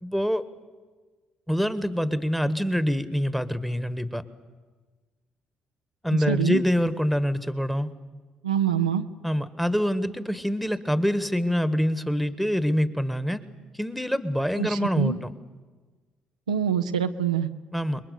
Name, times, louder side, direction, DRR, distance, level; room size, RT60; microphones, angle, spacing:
voice 1, 0.0-0.4 1.5-4.2 6.0-7.9 9.2-13.4 13.7-15.2 17.7-18.0, equal, ahead, 12 dB, 1.6 m, -25 dB
voice 2, 6.1-6.6 8.4-9.0 14.6-15.2 16.5-17.5, right 8 dB, 90° right, 7 dB, 0.7 m, -25 dB
29.0 x 21.5 x 7.0 m, 1.4 s
figure-of-eight pair, 45°, 4 cm